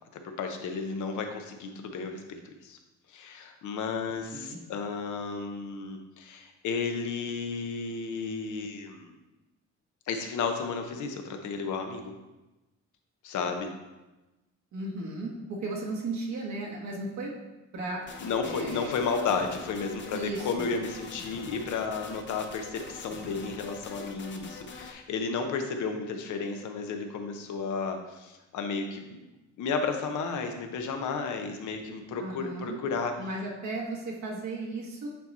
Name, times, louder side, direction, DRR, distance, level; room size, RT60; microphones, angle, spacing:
voice 1, 0.1-2.8 3.1-9.2 10.1-12.1 13.2-13.7 18.2-29.3 29.6-33.1, left 5 dB, 75° left, 5 dB, 0.9 m, -33 dB
voice 2, 14.7-17.3 17.7-18.0 18.4-19.0 20.1-20.7 32.2-32.8 33.2-35.1, right 2 dB, 65° right, -2 dB, 1.2 m, -35 dB
sound 1, 18.0-24.9, left 4 dB, 40° left, 0.7 m, -44 dB
8.3 x 3.0 x 4.1 m, 1.1 s
cardioid pair, 90°, 30 cm